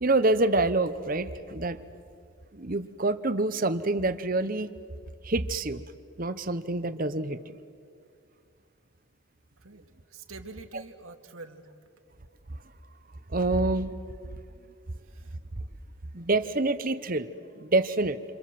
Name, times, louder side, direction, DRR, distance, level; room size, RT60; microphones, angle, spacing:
voice 1, 0.0-1.8 2.5-4.7 5.2-5.9 6.2-7.6 10.7-10.8 12.5-12.6 13.3-13.9 15.6-15.7 16.1-18.2, right 2 dB, 40° right, 12 dB, 1.0 m, -27 dB
voice 2, 9.6-11.6 15.1-15.4, right 3 dB, 80° right, 4 dB, 2.4 m, -46 dB
28.5 x 27.5 x 7.7 m, 2.4 s
head